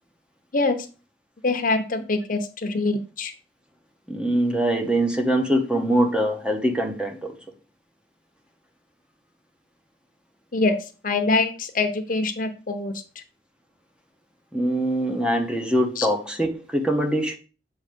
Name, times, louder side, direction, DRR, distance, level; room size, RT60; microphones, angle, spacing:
voice 1, 0.5-0.9 1.4-3.3 10.5-10.8 11.0-13.0 16.0-16.1, left 3 dB, 50° left, 0.8 m, -24 dB
voice 2, 4.1-7.4 14.5-17.4, right 1 dB, 5° right, 0.8 m, -23 dB
7.4 x 3.1 x 5.2 m
head